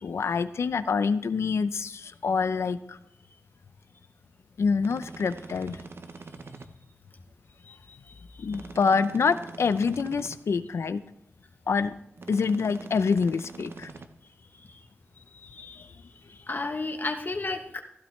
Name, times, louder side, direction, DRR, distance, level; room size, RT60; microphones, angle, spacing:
voice 1, 0.0-3.0 4.6-5.8 8.4-11.0 11.7-11.9 12.3-13.9, left 5 dB, 90° left, 12 dB, 0.6 m, -26 dB
sound 1, 4.8-6.7 8.5-10.4 12.2-14.1, right 3 dB, 60° right, 0.8 m, -44 dB
voice 2, 7.7-8.0 14.7-14.8 15.4-15.9 16.3-17.8, left 3 dB, 45° left, 5 dB, 1.1 m, -33 dB
15.0 x 12.5 x 3.3 m, 0.78 s
cardioid pair, 55°, 5 cm